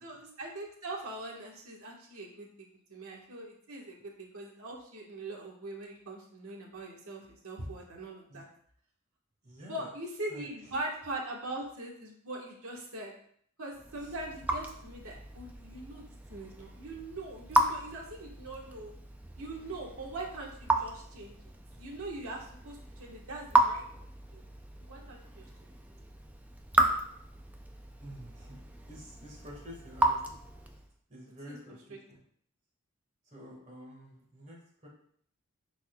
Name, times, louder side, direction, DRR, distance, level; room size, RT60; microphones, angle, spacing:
voice 1, 0.0-8.5 9.7-13.1 13.6-18.9 19.4-24.4 24.8-25.5 31.5-31.6, right 2 dB, 80° right, -1 dB, 1.4 m, -42 dB
voice 2, 9.4-9.9 10.3-10.7 14.0-14.1 28.0-30.4 31.1-32.2 33.2-34.9, equal, 35° right, -2 dB, 1.6 m, -49 dB
Raindrop / Drip, 13.7-30.9, right 1 dB, 5° right, 0.4 m, -34 dB
9.8 x 4.2 x 2.3 m, 0.63 s
head